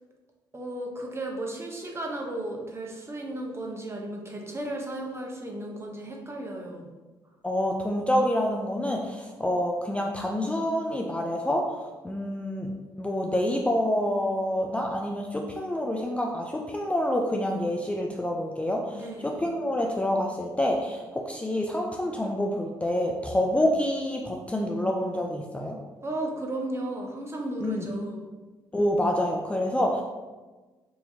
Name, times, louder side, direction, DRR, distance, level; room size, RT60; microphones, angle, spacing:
voice 1, 0.5-6.9 18.9-19.4 26.0-28.2, right 1 dB, 25° right, 0 dB, 0.8 m, -34 dB
voice 2, 7.4-12.7 13.0-25.8 27.6-27.9 28.7-30.0, left 1 dB, 10° left, 0 dB, 0.4 m, -27 dB
3.9 x 2.8 x 2.7 m, 1.2 s
hypercardioid pair, 50°, 10 cm